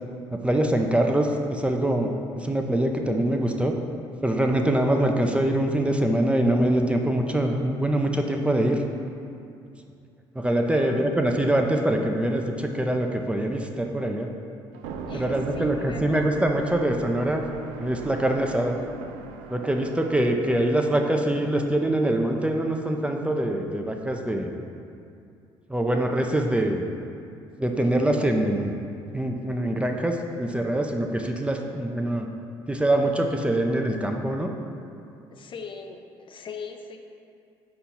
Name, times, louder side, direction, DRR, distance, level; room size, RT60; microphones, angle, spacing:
voice 1, 0.3-3.8 4.2-8.8 10.3-14.3 15.1-17.4 17.8-18.8 19.5-24.6 25.7-26.9 27.6-28.7 29.1-32.3 32.7-34.5, right 1 dB, 10° right, 3 dB, 0.6 m, -24 dB
voice 2, 10.7-11.1 15.1-16.3 35.3-37.0, left 5 dB, 45° left, 4 dB, 0.5 m, -41 dB
sound 1, 14.7-20.4, right 5 dB, 80° right, 0.4 m, -38 dB
4.5 x 4.4 x 5.5 m, 2.5 s
supercardioid pair, 65°, 12 cm